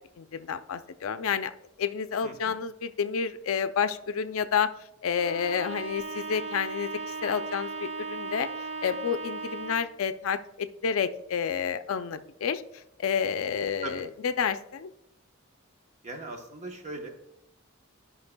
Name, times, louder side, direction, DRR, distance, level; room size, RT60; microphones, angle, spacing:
voice 1, 0.2-1.5 1.8-4.7 5.0-8.5 8.8-14.9, left 7 dB, 75° left, 11 dB, 0.4 m, -30 dB
voice 2, 2.2-2.6 13.8-14.0 16.0-17.1, right 2 dB, 35° right, 3 dB, 1.0 m, -39 dB
Bowed string instrument, 5.1-10.0, right 4 dB, 60° right, 1.2 m, -37 dB
12.0 x 5.4 x 2.2 m, 0.81 s
head